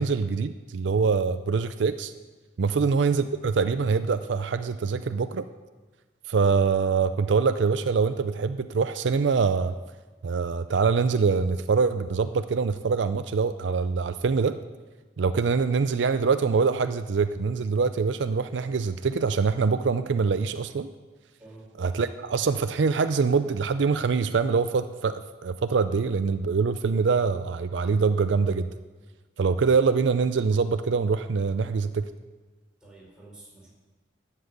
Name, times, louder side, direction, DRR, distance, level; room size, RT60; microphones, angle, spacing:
voice 1, 0.0-2.1 2.6-5.4 6.3-9.7 10.2-14.6 15.2-20.9 21.8-28.7 29.4-32.1, right 5 dB, 70° right, 11 dB, 0.5 m, -24 dB
voice 2, 32.8-33.7, right 2 dB, 5° right, -6 dB, 4.4 m, -48 dB
11.5 x 7.5 x 8.1 m, 1.3 s
head